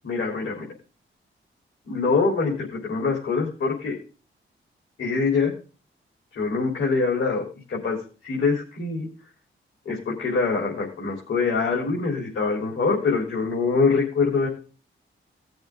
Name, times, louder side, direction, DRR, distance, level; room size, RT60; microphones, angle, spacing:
voice 1, 0.0-0.7 1.9-4.0 5.0-5.5 6.3-8.0 8.2-9.1 9.9-14.5, left 4 dB, 85° left, -2 dB, 3.9 m, -24 dB
18.0 x 7.1 x 3.8 m, 0.35 s
wide cardioid pair, 135°, 21 cm